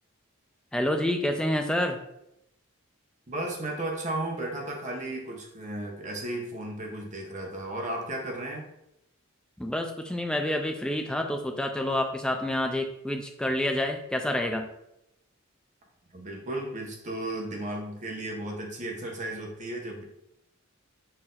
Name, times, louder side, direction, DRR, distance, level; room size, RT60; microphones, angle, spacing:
voice 1, 0.7-2.0 9.6-14.7, left 1 dB, 5° left, 4 dB, 0.3 m, -28 dB
voice 2, 3.3-8.6 16.1-20.0, right 1 dB, 35° right, 0 dB, 0.9 m, -34 dB
4.4 x 2.6 x 3.7 m, 0.83 s
head